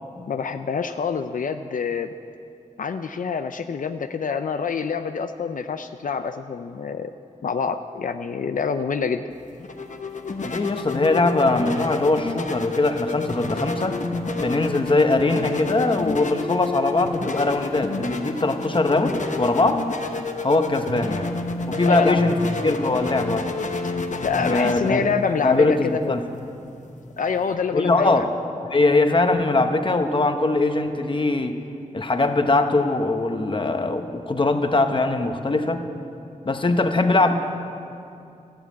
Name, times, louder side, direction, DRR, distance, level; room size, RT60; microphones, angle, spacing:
voice 1, 0.3-2.1 2.8-7.1 7.4-9.2 21.8-22.4 22.9-23.0 24.2-26.2 27.2-28.3, left 6 dB, 80° left, 8 dB, 0.5 m, -26 dB
sound 1, 9.3-27.5, left 3 dB, 65° left, 1.1 m, -30 dB
voice 2, 10.4-14.0 14.3-19.8 20.4-21.3 21.7-22.4 22.6-23.5 24.4-25.1 25.4-26.2 27.7-28.3 28.7-31.6 31.9-35.8 36.4-37.3, left 2 dB, 40° left, 6 dB, 1.1 m, -21 dB
14.0 x 11.5 x 8.4 m, 2.6 s
wide cardioid pair, 100°, 14 cm